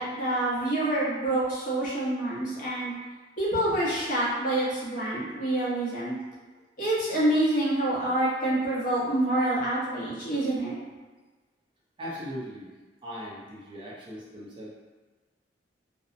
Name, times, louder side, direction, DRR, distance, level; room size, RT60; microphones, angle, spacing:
voice 1, 0.0-2.9 3.4-6.2 6.8-10.8, right 1 dB, 50° left, -8 dB, 0.8 m, -27 dB
voice 2, 12.0-12.7 13.0-14.7, equal, 30° right, -6 dB, 0.5 m, -39 dB
2.6 x 2.0 x 2.5 m, 1.3 s
head